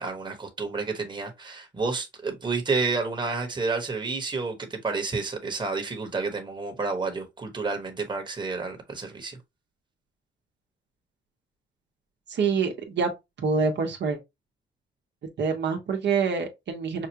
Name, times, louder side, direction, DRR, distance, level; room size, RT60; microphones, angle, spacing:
voice 1, 0.0-9.4, right 4 dB, 25° right, 1.3 m, -30 dB
voice 2, 12.3-13.1 13.4-14.2 15.4-17.1, right 5 dB, 60° right, 1.2 m, -26 dB
5.8 x 2.4 x 2.9 m
cardioid pair, 90°, 20 cm